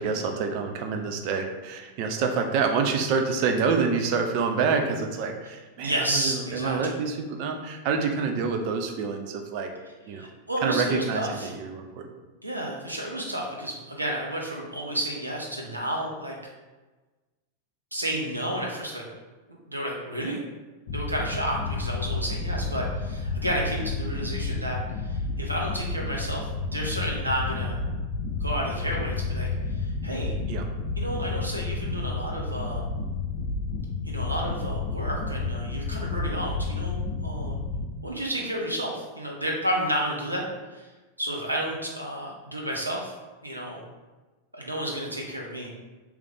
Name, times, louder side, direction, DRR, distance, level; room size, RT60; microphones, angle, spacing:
voice 1, 0.0-9.7 10.1-10.3 10.6-12.1 30.5-30.7, right 5 dB, 45° right, 4 dB, 0.5 m, -27 dB
voice 2, 5.8-7.0 10.2-11.5 12.4-16.4 17.9-19.0 19.7-20.4 20.9-27.8 28.4-30.3 31.0-32.8 34.0-37.6 38.0-40.4 40.7-40.9 41.2-43.1 43.4-43.9 44.5-45.7, right 1 dB, 85° right, -2 dB, 0.7 m, -31 dB
sound 1, 20.9-37.8, left 3 dB, 50° left, 0.6 m, -31 dB
3.2 x 3.1 x 3.8 m, 1.2 s
figure-of-eight pair, 90°, 0 cm